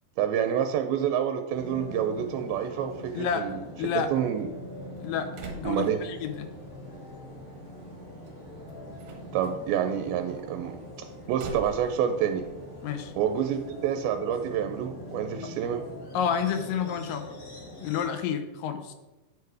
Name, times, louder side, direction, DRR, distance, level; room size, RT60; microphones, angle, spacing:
voice 1, 0.2-3.6 4.1-4.5 5.6-6.0 9.3-10.8 11.3-12.5 13.2-15.8, right 9 dB, 90° right, 6 dB, 2.5 m, -28 dB
sound 1, 1.5-18.0, left 1 dB, 55° left, 4.3 m, -43 dB
voice 2, 3.1-3.5 3.8-4.1 5.0-6.5 12.8-13.1 15.4-15.5 16.1-17.3 17.8-18.9, left 7 dB, 75° left, 8 dB, 2.3 m, -30 dB
Slam, 4.3-13.7, right 4 dB, 70° right, 2.6 m, -48 dB
9.4 x 4.7 x 4.8 m, 1.1 s
omnidirectional pair, 4.2 m